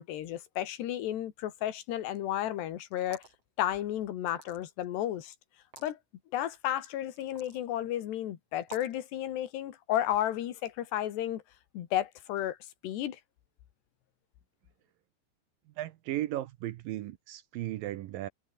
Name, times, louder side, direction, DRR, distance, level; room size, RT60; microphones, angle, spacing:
voice 1, 0.0-3.2 3.6-5.3 5.8-6.0 6.3-11.4 11.7-12.6 12.8-13.2, left 12 dB, 90° left, 3.9 m, -33 dB
sound 1, 2.9-3.4 4.3-4.8 5.6-5.9 7.2-7.6 8.6-9.0, right 4 dB, 35° right, 6.2 m, -49 dB
voice 2, 15.8-18.3, right 14 dB, 75° right, 2.3 m, -36 dB
omnidirectional pair, 4.7 m